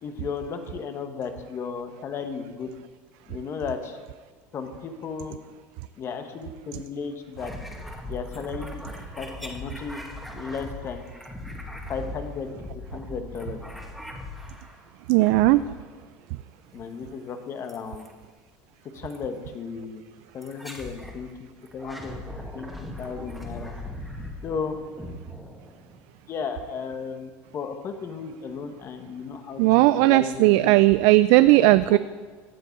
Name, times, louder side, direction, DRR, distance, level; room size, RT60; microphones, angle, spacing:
voice 1, 0.0-2.7 3.3-4.0 4.5-5.4 6.0-7.5 8.0-8.8 9.2-10.0 10.3-11.0 11.9-12.5 12.9-13.7 16.7-18.1 18.9-20.0 20.3-22.2 22.5-23.7 24.4-24.8 26.3-30.8 31.5-32.0, left 6 dB, 40° left, 7 dB, 1.5 m, -34 dB
sound 1, 7.4-14.8 15.2-16.0 17.7-18.1 19.1-19.3 20.4-21.2 21.7-26.0, left 1 dB, ahead, 2.0 m, -39 dB
voice 2, 15.1-15.6 29.6-32.0, right 18 dB, 70° right, 14 dB, 0.3 m, -17 dB
15.5 x 9.8 x 4.7 m, 1.5 s
supercardioid pair, 115°, 7 cm